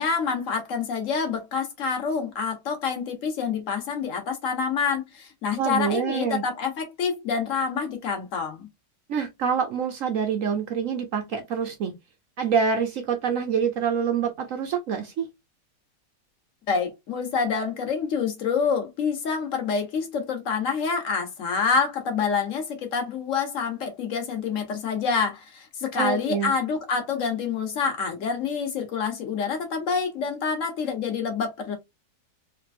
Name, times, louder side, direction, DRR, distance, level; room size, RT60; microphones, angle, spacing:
voice 1, 0.0-8.7 16.7-31.8, left 5 dB, 50° left, 1.2 m, -27 dB
voice 2, 5.6-6.4 9.1-11.9 12.4-15.3 25.9-26.5, right 7 dB, 65° right, 0.9 m, -26 dB
3.3 x 2.9 x 2.5 m
omnidirectional pair, 1.9 m